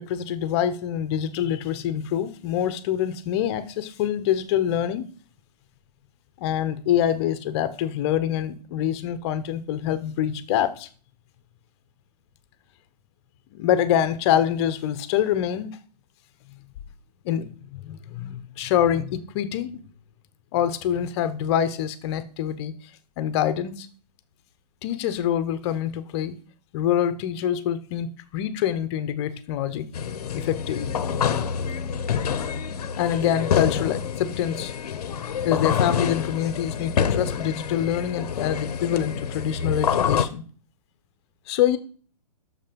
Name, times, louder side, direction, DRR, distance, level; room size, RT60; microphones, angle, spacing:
voice 1, 0.0-5.0 6.4-10.9 13.5-15.7 17.2-17.4 17.7-19.8 20.5-22.7 23.2-23.9 24.8-26.4 26.7-29.8 30.3-31.0 33.0-34.7 35.4-40.4 41.5-41.8, left 10 dB, 40° left, 1.1 m, -25 dB
sound 1, 29.9-40.3, left 7 dB, 65° left, 1.0 m, -27 dB
8.8 x 6.8 x 5.3 m
hypercardioid pair, 125°, 21 cm